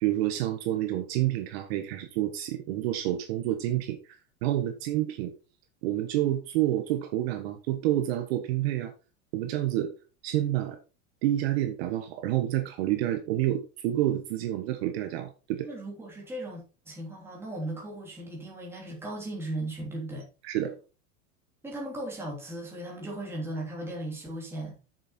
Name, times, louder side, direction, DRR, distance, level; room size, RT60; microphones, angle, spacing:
voice 1, 0.0-4.0 4.4-5.3 5.8-8.9 9.3-9.9 10.2-10.8 11.2-15.7 20.4-20.7, right 13 dB, 55° right, 1.3 m, -28 dB
voice 2, 15.6-20.3 21.6-24.8, right 1 dB, 5° right, 2.9 m, -37 dB
8.1 x 6.8 x 4.3 m
supercardioid pair, 180°, 38 cm